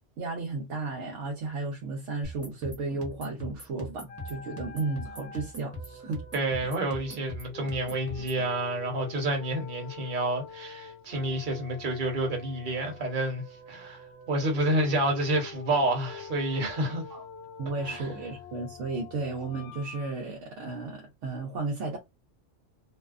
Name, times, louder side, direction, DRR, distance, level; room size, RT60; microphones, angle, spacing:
voice 1, 0.2-6.2 6.6-6.7 17.1-17.2 17.6-22.0, right 3 dB, 80° right, 1.0 m, -34 dB
sound 1, 2.2-8.4, equal, 15° right, 0.7 m, -41 dB
sound 2, 4.1-20.1, left 6 dB, 65° left, 0.9 m, -46 dB
voice 2, 6.3-17.0 17.9-18.0, right 1 dB, 45° right, 1.0 m, -29 dB
2.6 x 2.1 x 2.3 m
omnidirectional pair, 1.2 m